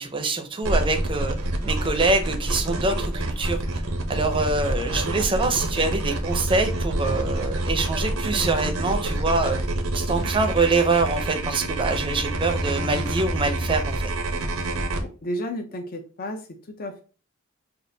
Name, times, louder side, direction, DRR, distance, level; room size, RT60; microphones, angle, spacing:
voice 1, 0.0-1.4 1.6-3.8 4.1-9.6 9.9-14.0, right 3 dB, 25° right, 0.6 m, -25 dB
sound 1, 0.6-15.0, right 1 dB, 85° right, 0.8 m, -27 dB
voice 2, 15.0-17.0, equal, 45° left, 0.6 m, -33 dB
5.2 x 2.5 x 2.7 m
head